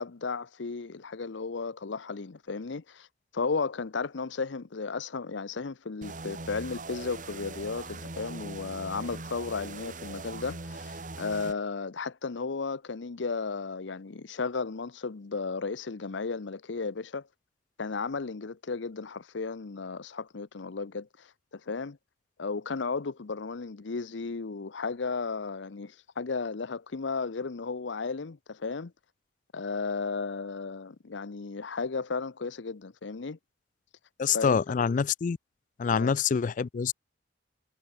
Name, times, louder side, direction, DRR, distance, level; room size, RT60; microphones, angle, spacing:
voice 1, 0.0-3.1 3.3-17.3 17.8-22.0 22.4-28.9 29.5-33.4 34.3-34.6 35.9-36.1, left 4 dB, 75° left, 0.7 m, -34 dB
sound 1, 6.0-11.5, right 3 dB, 45° right, 2.0 m, -41 dB
voice 2, 34.2-35.4 35.8-36.9, left 6 dB, 45° left, 0.3 m, -26 dB
head